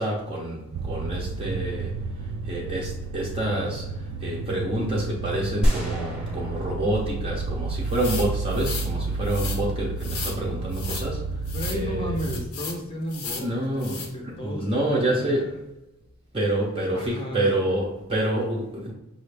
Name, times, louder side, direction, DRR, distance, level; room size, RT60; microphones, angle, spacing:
voice 1, 0.0-1.9 2.5-3.8 4.2-11.2 11.7-12.1 13.4-14.0 14.4-15.6 16.3-18.9, right 1 dB, 25° right, -3 dB, 0.6 m, -27 dB
sound 1, 0.7-12.5, right 3 dB, 85° right, 0.3 m, -31 dB
sound 2, 5.6-8.5, equal, 5° right, 0.9 m, -29 dB
sound 3, 7.9-8.9 9.2-9.6 10.0-10.4 10.7-11.1 11.4-11.8 12.2-12.8 13.1-13.5 13.8-14.1, left 5 dB, 70° left, 0.7 m, -35 dB
voice 2, 11.5-15.5 16.4-17.5, equal, 25° left, 1 dB, 0.6 m, -34 dB
5.5 x 2.5 x 3.2 m, 0.95 s
head